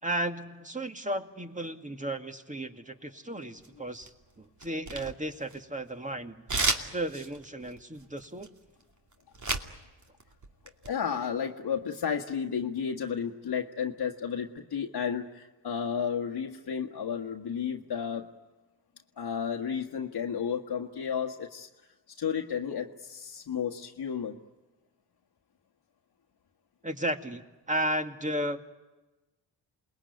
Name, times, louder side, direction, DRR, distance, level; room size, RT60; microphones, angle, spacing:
voice 1, 0.0-6.4 6.8-8.5 26.8-28.6, right 1 dB, 15° right, 6 dB, 2.2 m, -34 dB
sound 1, 3.6-4.2 4.6-5.9 6.5-9.7 10.0-10.9, right 3 dB, 35° right, 2.7 m, -32 dB
voice 2, 10.8-18.3 19.2-21.7 22.2-24.4, left 7 dB, 50° left, 1 dB, 1.7 m, -32 dB
28.0 x 20.5 x 9.5 m, 1.1 s
hypercardioid pair, 45°, 49 cm